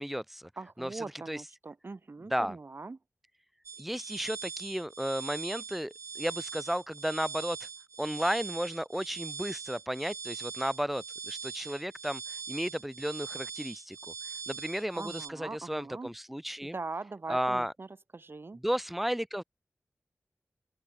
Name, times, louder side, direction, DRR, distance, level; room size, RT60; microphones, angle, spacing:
voice 1, 0.0-0.5 0.8-1.4 2.2-2.6 3.8-7.7 8.0-14.1 14.5-16.8 17.3-17.7 18.5-19.4, equal, 5° right, 0.8 m, -34 dB
voice 2, 0.6-3.0 14.9-16.1 16.6-17.9 18.1-18.6, right 3 dB, 50° right, 2.1 m, -41 dB
sound 1, 3.6-15.3, right 5 dB, 85° right, 1.0 m, -42 dB
open air
wide cardioid pair, 75°, 5 cm